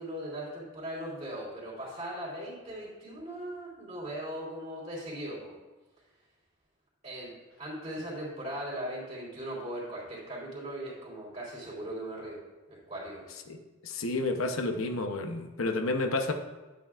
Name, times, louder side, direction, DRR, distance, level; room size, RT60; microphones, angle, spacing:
voice 1, 0.0-5.6 7.0-12.4 12.7-13.3, right 1 dB, 30° right, -6 dB, 3.2 m, -39 dB
voice 2, 13.5-16.3, left 2 dB, 80° left, 4 dB, 0.9 m, -31 dB
11.5 x 9.1 x 2.5 m, 1.2 s
head